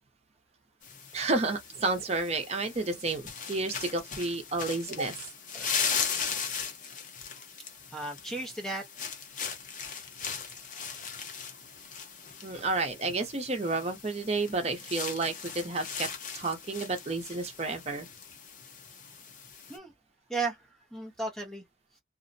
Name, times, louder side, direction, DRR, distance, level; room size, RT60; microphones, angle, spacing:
sound 1, 0.8-19.8, left 6 dB, 45° left, 0.7 m, -38 dB
voice 1, 1.1-5.1 12.4-16.1 16.3-18.1, right 3 dB, 35° right, 0.7 m, -31 dB
voice 2, 7.9-8.8 19.7-19.9 20.3-21.6, right 3 dB, 5° left, 0.5 m, -35 dB
2.5 x 2.0 x 2.6 m
head